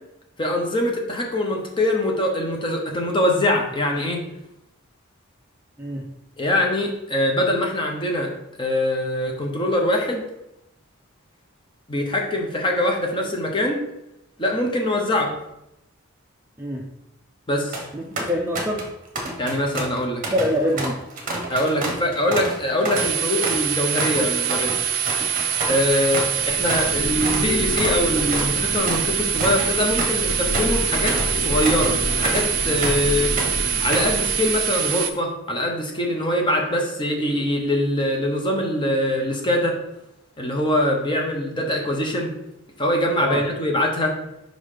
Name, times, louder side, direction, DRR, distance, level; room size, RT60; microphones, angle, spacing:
voice 1, 0.4-4.2 6.4-8.3 8.6-10.2 11.9-13.8 14.4-15.3 17.5-17.8 19.4-20.2 21.5-24.8 25.7-33.3 33.8-39.8 40.4-42.3 42.8-44.1, left 1 dB, 20° left, 1 dB, 0.9 m, -23 dB
voice 2, 5.8-6.1 16.6-16.9 17.9-18.9 20.3-21.0 43.2-43.4, equal, 10° right, -1 dB, 0.5 m, -25 dB
sound 1, 17.5-17.9 18.2-18.9 19.2-26.9 27.2-27.5 27.8-33.1 33.4-34.2, right 1 dB, 40° right, 1.1 m, -29 dB
sound 2, 23.0-35.1, right 8 dB, 85° right, 0.5 m, -24 dB
sound 3, 25.4-35.0, left 2 dB, 45° left, 0.4 m, -30 dB
5.2 x 3.9 x 4.9 m, 0.87 s
head